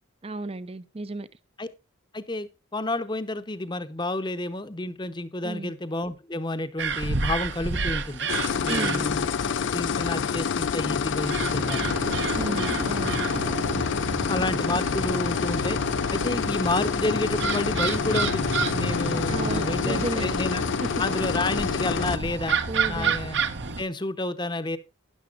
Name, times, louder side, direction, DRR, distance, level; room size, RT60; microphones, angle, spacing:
voice 1, 0.2-1.3 5.4-5.7 8.7-9.1 12.4-13.2 19.3-20.3 22.7-23.1, right 2 dB, 30° right, 0.6 m, -33 dB
voice 2, 2.1-8.3 8.6-9.2 9.7-11.9 13.5-13.6 14.3-15.8 16.1-20.7 21.0-22.6 22.9-23.4 23.8-24.8, left 2 dB, 20° left, 0.8 m, -30 dB
sound 1, 6.8-23.8, right 4 dB, 60° right, 1.1 m, -30 dB
sound 2, 8.3-22.2, left 6 dB, 60° left, 0.4 m, -27 dB
13.0 x 10.5 x 2.5 m
head